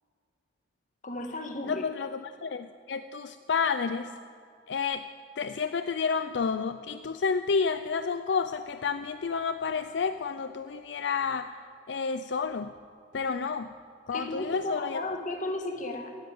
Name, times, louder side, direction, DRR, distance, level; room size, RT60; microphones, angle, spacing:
voice 1, 1.0-1.9 14.1-16.2, left 1 dB, 45° left, 4 dB, 1.7 m, -34 dB
voice 2, 1.6-4.1 4.7-5.1 5.4-11.5 11.9-12.7 13.1-13.7 14.1-15.0, left 5 dB, 70° left, 10 dB, 0.5 m, -30 dB
14.5 x 10.5 x 9.4 m, 2.4 s
head